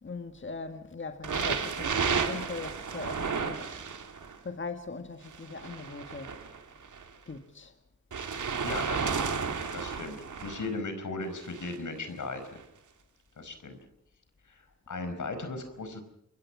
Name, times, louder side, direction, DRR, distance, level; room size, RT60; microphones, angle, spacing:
voice 1, 0.0-3.7 4.4-6.3 7.3-7.7, left 4 dB, 40° left, 1.6 m, -40 dB
sound 1, 1.2-4.4 5.2-7.1 8.1-10.7 11.4-11.8 12.6-12.7, right 5 dB, 90° right, 2.6 m, -32 dB
voice 2, 8.6-9.3 9.7-10.2 10.4-12.6 13.4-13.8 14.9-16.0, left 3 dB, 80° left, 4.9 m, -36 dB
29.0 x 23.5 x 6.0 m
wide cardioid pair, 85°, 30 cm